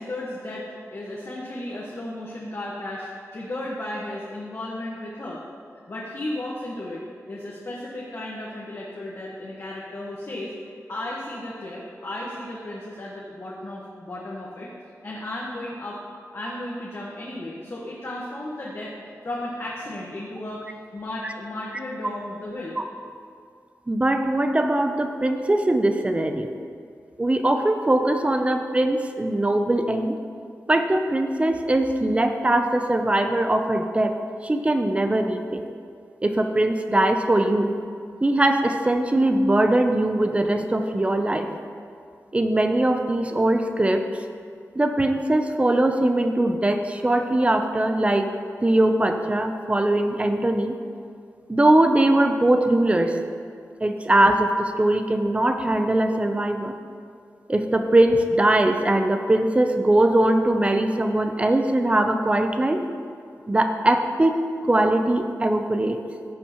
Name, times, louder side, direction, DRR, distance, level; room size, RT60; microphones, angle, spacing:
voice 1, 0.0-5.4 5.9-7.0 7.3-10.5 10.9-14.7 15.0-16.0 16.3-19.0 19.2-20.6 20.9-22.8, left 1 dB, 45° left, -5 dB, 1.2 m, -34 dB
voice 2, 23.9-26.6 27.2-30.1 30.7-34.2 34.4-35.6 36.2-37.8 38.2-41.5 42.3-44.1 44.8-48.3 48.6-50.7 51.5-53.2 53.8-56.7 57.5-62.8 63.5-64.4 64.6-66.0, right 1 dB, 20° right, 6 dB, 0.6 m, -21 dB
15.5 x 7.3 x 3.0 m, 2.2 s
wide cardioid pair, 130°, 6 cm